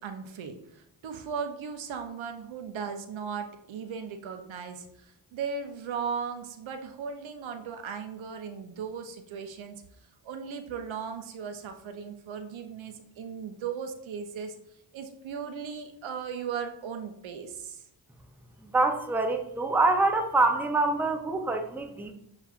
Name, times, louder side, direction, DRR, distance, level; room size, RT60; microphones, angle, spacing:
voice 1, 0.0-4.9 5.3-9.8 10.2-14.5 14.9-17.8, right 6 dB, 75° right, 7 dB, 0.6 m, -37 dB
voice 2, 18.7-22.1, right 3 dB, 5° right, 5 dB, 0.4 m, -25 dB
7.0 x 2.4 x 2.4 m, 0.73 s
cardioid pair, 55°, 47 cm